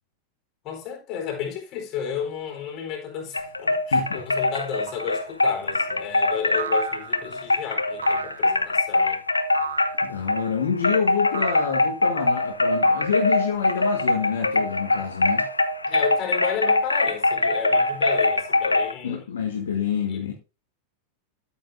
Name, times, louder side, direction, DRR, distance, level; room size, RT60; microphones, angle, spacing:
voice 1, 0.6-9.2 15.9-19.3 20.1-20.3, left 8 dB, 35° left, 4.0 m, -33 dB
sound 1, 3.3-10.5 10.8-18.9, left 2 dB, 80° left, 0.6 m, -22 dB
voice 2, 3.9-4.2 10.0-15.4 19.0-20.3, left 7 dB, 65° left, 1.6 m, -27 dB
sound 2, 4.9-5.3 6.6-7.4 8.0-8.6 9.5-10.1 11.3-11.8 12.8-13.6, right 8 dB, 65° right, 0.7 m, -36 dB
13.0 x 8.1 x 2.6 m
figure-of-eight pair, 90°, 0 cm